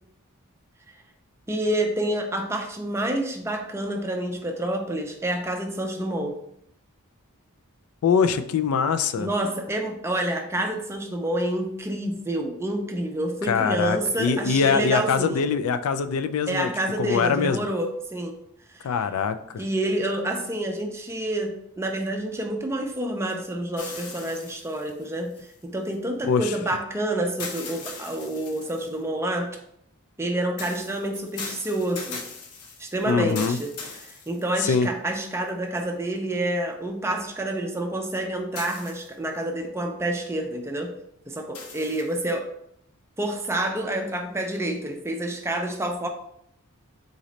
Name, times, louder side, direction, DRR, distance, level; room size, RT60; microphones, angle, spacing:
voice 1, 1.5-6.4 9.2-15.5 16.5-18.4 18.7-19.0 19.6-29.6 30.2-32.2 32.8-40.9 41.3-42.4 43.2-46.1, right 1 dB, 10° right, 3 dB, 0.4 m, -28 dB
voice 2, 8.0-9.3 13.5-16.7 17.0-17.6 18.8-19.6 26.3-26.5 33.1-33.6 34.6-34.9, left 6 dB, 70° left, 11 dB, 0.3 m, -23 dB
sound 1, 23.8-25.9 27.4-29.0 30.6-34.9 35.5-35.6 38.6-39.4 41.5-42.3, left 4 dB, 90° left, 0.8 m, -39 dB
4.0 x 3.1 x 3.9 m, 0.73 s
head